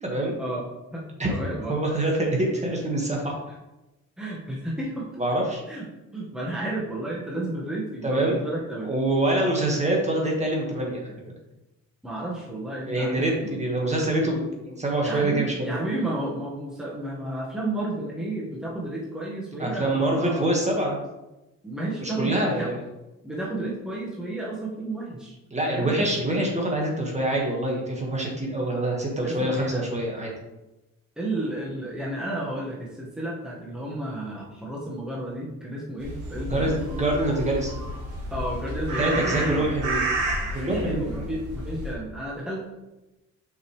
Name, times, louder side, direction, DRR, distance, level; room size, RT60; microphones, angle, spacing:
voice 1, 0.0-0.4 1.2-1.3 1.7-3.3 5.2-5.6 8.0-8.4 8.8-11.1 12.9-15.7 19.6-21.0 22.0-22.8 25.5-30.3 36.3-37.8 39.0-40.1 40.5-41.3, right 1 dB, 20° right, -1 dB, 1.6 m, -25 dB
voice 2, 0.9-1.8 4.2-5.1 5.7-5.9 6.1-8.9 12.0-13.6 15.0-20.5 21.6-22.7 23.2-25.4 25.7-25.9 29.2-29.9 31.2-36.7 37.8-37.9 38.3-39.7 40.6-42.6, right 1 dB, ahead, -5 dB, 1.5 m, -32 dB
sound 1, 36.0-41.9, right 1 dB, 80° right, 2.3 m, -31 dB
6.1 x 5.4 x 3.2 m, 1.0 s
cardioid pair, 90°, 30 cm